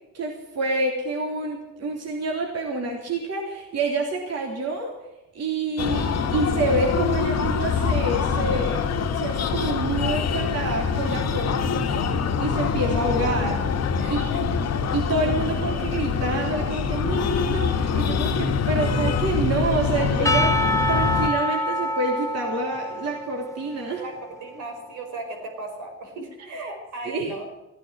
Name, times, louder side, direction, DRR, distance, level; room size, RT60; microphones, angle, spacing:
voice 1, 0.1-5.0 5.3-8.9 9.1-13.6 14.1-14.5 14.9-20.6 20.9-24.0 27.0-27.3, right 2 dB, 55° right, 0 dB, 3.4 m, -27 dB
Breathing, 5.8-21.3, left 6 dB, 55° left, 1.5 m, -24 dB
voice 2, 14.0-14.4 24.0-27.5, right 2 dB, 80° right, 2 dB, 5.1 m, -37 dB
Percussion / Church bell, 20.3-24.6, left 1 dB, 10° left, 1.2 m, -26 dB
15.5 x 10.5 x 7.6 m, 0.98 s
cardioid pair, 90°, 30 cm